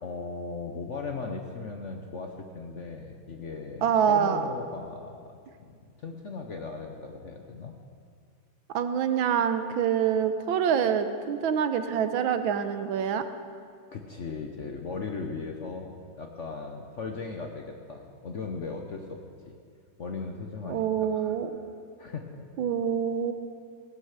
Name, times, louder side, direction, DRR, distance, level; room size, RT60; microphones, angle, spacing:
voice 1, 0.0-5.4 5.7-7.7 13.9-19.2 19.4-19.6 20.0-21.4 22.0-22.4, left 4 dB, 50° left, 3 dB, 0.9 m, -38 dB
voice 2, 3.8-4.4 8.7-13.2 20.7-21.5 22.6-23.3, right 8 dB, 80° right, 9 dB, 1.6 m, -26 dB
17.0 x 9.9 x 6.6 m, 2.2 s
omnidirectional pair, 2.2 m